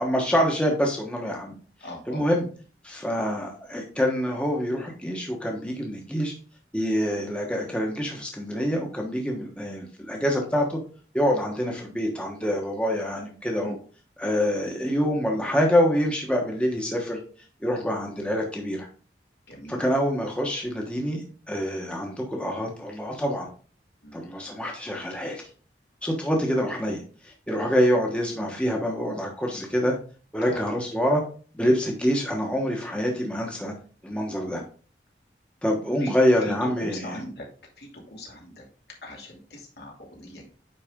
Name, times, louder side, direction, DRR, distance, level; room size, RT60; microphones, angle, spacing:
voice 1, 0.0-1.5 2.1-2.5 2.8-6.3 6.7-10.8 11.1-13.7 14.2-17.2 17.6-18.9 19.7-23.5 24.1-25.5 26.0-29.9 30.3-31.2 31.5-33.7 34.0-34.6 35.6-37.2, equal, 5° left, 0 dB, 1.2 m, -26 dB
voice 2, 1.8-2.3 13.6-13.7 19.5-19.8 24.0-24.3 29.5-29.6 30.4-30.6 34.5-34.6 36.0-36.1 36.4-37.5 37.8-38.6 39.0-40.4, left 1 dB, 70° left, -1 dB, 2.6 m, -39 dB
9.6 x 4.1 x 3.7 m, 0.40 s
head